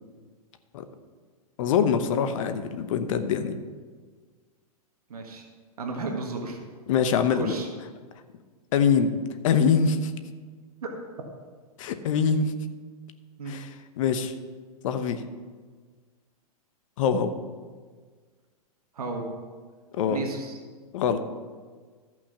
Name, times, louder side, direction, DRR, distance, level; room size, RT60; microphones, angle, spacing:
voice 1, 1.6-3.6 6.9-7.5 8.7-9.1 9.4-10.1 11.8-12.5 13.5-14.3 14.8-15.2 17.0-17.3 19.9-20.2 20.9-21.2, left 6 dB, 60° left, 9 dB, 1.0 m, -24 dB
voice 2, 5.1-5.4 5.8-6.6 7.3-7.7 10.8-10.9 13.4-13.6 18.9-19.4 20.1-20.6, right 3 dB, 75° right, 2 dB, 1.6 m, -33 dB
13.5 x 6.0 x 5.8 m, 1.5 s
hypercardioid pair, 105°, 19 cm